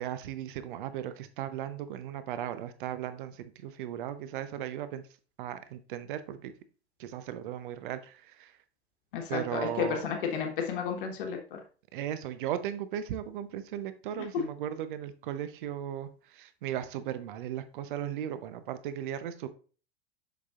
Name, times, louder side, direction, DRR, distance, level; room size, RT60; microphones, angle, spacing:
voice 1, 0.0-5.0 5.4-6.5 7.0-8.5 9.3-10.0 11.9-19.5, right 10 dB, 55° right, 12 dB, 0.7 m, -36 dB
voice 2, 9.1-11.6 14.3-14.4, left 7 dB, 55° left, 3 dB, 1.3 m, -32 dB
7.2 x 6.1 x 2.4 m, 0.38 s
figure-of-eight pair, 90°, 32 cm